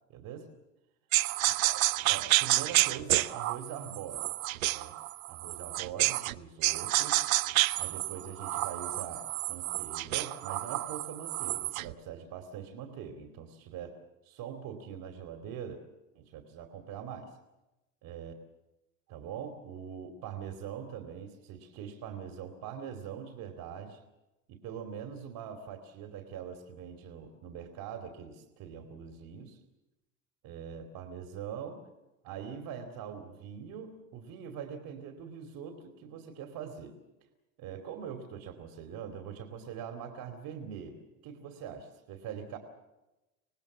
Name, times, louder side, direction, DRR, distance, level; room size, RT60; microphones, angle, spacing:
voice 1, 0.1-0.5 1.6-4.3 4.7-5.0 5.3-7.2 7.8-15.9 16.1-17.4 18.0-18.3 19.1-24.0 24.5-29.6 30.4-31.8 32.2-37.0 37.6-42.6, right 8 dB, 60° right, 6 dB, 2.8 m, -43 dB
sound 1, 1.1-6.3 6.6-11.9, right 17 dB, 80° right, 0.8 m, -29 dB
26.5 x 18.5 x 7.4 m, 0.99 s
hypercardioid pair, 75°, 40 cm